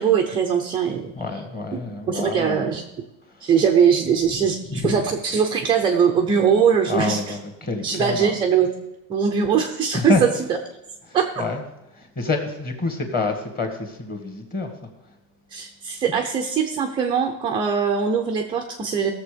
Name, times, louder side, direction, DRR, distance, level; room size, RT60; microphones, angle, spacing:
voice 1, 0.0-1.1 2.1-2.8 3.4-7.4 7.8-8.7 9.1-10.6 11.1-11.3 15.5-19.1, right 7 dB, 10° right, 3 dB, 0.3 m, -21 dB
voice 2, 1.1-2.7 3.3-3.5 4.7-5.0 6.9-8.4 9.9-10.2 11.1-11.6 11.9-14.7 16.1-16.2, left 3 dB, 20° left, 5 dB, 1.8 m, -27 dB
16.5 x 6.9 x 5.0 m, 0.95 s
supercardioid pair, 150°, 45 cm